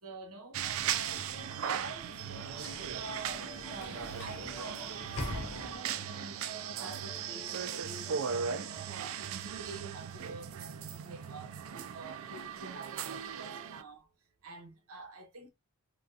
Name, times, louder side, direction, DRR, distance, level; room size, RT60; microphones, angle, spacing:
voice 1, 0.0-14.1 14.4-15.5, right 4 dB, 85° right, 1.0 m, -47 dB
sound 1, 0.5-13.8, right 8 dB, 70° right, 0.3 m, -38 dB
sound 2, 0.6-9.4, left 2 dB, 15° left, 0.3 m, -56 dB
Sliding door / Slam, 1.5-6.2, left 2 dB, 85° left, 0.7 m, -44 dB
3.5 x 2.3 x 2.6 m
head